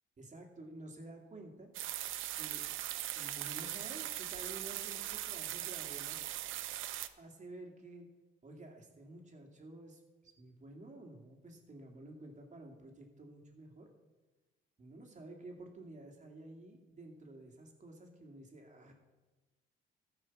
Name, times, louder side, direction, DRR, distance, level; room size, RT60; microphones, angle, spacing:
voice 1, 0.2-1.7 2.3-2.7 3.1-6.2 7.2-8.1 8.4-13.9 14.8-18.9, right 2 dB, 35° right, 2 dB, 2.3 m, -51 dB
sound 1, 1.7-7.1, right 13 dB, 85° right, 0.6 m, -40 dB
14.0 x 5.1 x 6.0 m, 1.2 s
cardioid pair, 90°, 20 cm